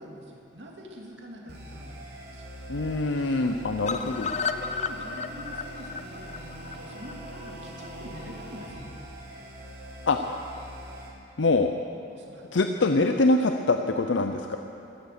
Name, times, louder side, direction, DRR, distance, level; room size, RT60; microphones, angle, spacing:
voice 1, 0.0-2.4 3.1-3.7 4.0-8.9 12.1-12.6, equal, 75° right, -1 dB, 2.4 m, -45 dB
sound 1, 1.5-11.1, right 1 dB, 55° right, 3.8 m, -42 dB
voice 2, 2.7-4.3 10.0-10.4 11.4-11.7 12.5-14.6, left 2 dB, 90° left, 6 dB, 0.7 m, -24 dB
sound 2, 3.9-7.9 8.2-8.3 8.6-8.7 9.0-9.1, left 5 dB, 40° left, 0.6 m, -33 dB
15.0 x 14.0 x 6.7 m, 2.7 s
head